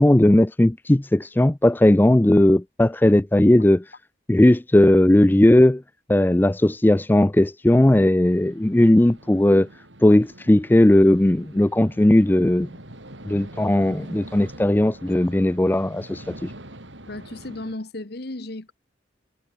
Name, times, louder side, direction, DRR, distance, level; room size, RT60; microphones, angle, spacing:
voice 1, 0.0-3.8 4.3-5.8 6.1-9.7 10.0-12.7 13.3-16.5, left 1 dB, 10° left, 0.4 m, -17 dB
sound 1, 8.3-17.7, right 1 dB, 75° right, 5.2 m, -44 dB
voice 2, 17.1-18.7, left 2 dB, 55° left, 1.3 m, -34 dB
head